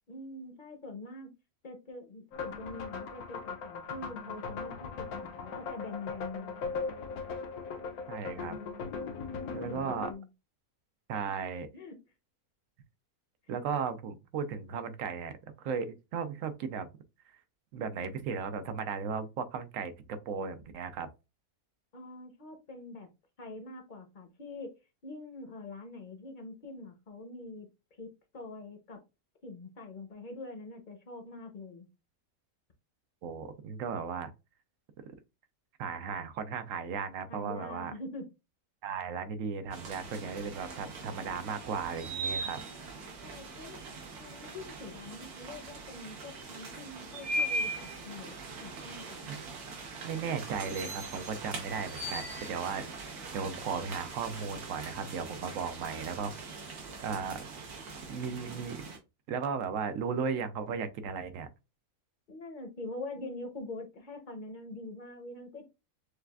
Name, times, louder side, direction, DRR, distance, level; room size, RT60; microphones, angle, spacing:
voice 1, 0.1-1.3 1.6-6.7 9.6-10.3 11.7-12.0 21.9-23.1 23.4-24.7 25.0-27.7 28.0-29.0 29.4-31.9 37.3-38.2 43.2-43.8 44.2-48.3 48.6-49.3 62.3-65.7, left 2 dB, 40° left, 0.7 m, -44 dB
sound 1, 2.3-10.1, left 4 dB, 80° left, 1.2 m, -39 dB
voice 2, 8.1-8.6 9.5-10.1 11.1-11.7 13.5-16.9 17.7-21.1 33.2-34.3 35.8-37.9 38.8-42.6 49.3-49.4 50.0-57.4 58.1-58.9 59.3-61.5, right 6 dB, 70° right, 0.9 m, -36 dB
sound 2, 39.7-59.0, right 2 dB, 90° right, 1.6 m, -40 dB
6.5 x 2.4 x 2.3 m
omnidirectional pair, 1.6 m